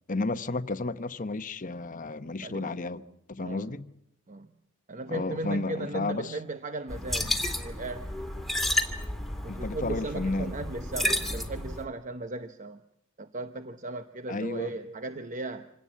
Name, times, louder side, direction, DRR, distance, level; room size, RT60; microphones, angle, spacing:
voice 1, 0.1-3.0 3.3-3.9 5.1-6.4 9.5-10.6 14.3-14.7, left 2 dB, 40° left, 0.9 m, -32 dB
voice 2, 2.4-2.7 3.4-3.7 4.3-4.5 4.9-8.1 9.4-12.8 13.2-15.7, right 2 dB, 35° right, 0.9 m, -37 dB
sound 1, 6.9-11.9, left 1 dB, ahead, 2.0 m, -31 dB
26.5 x 18.0 x 8.5 m
head